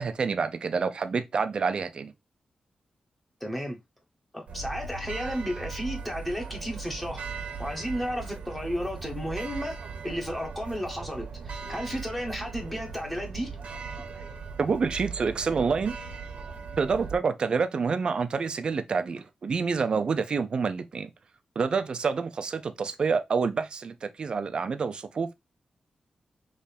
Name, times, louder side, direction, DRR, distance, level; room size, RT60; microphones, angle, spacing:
voice 1, 0.0-2.1 14.6-16.0 16.8-21.1 21.6-25.3, right 5 dB, 45° right, 0.5 m, -28 dB
voice 2, 3.4-3.8 4.3-7.2 7.6-13.5, equal, 5° left, 1.0 m, -33 dB
sound 1, 4.5-17.2, right 5 dB, 70° right, 1.0 m, -39 dB
3.6 x 3.2 x 4.1 m
wide cardioid pair, 180°, 2 cm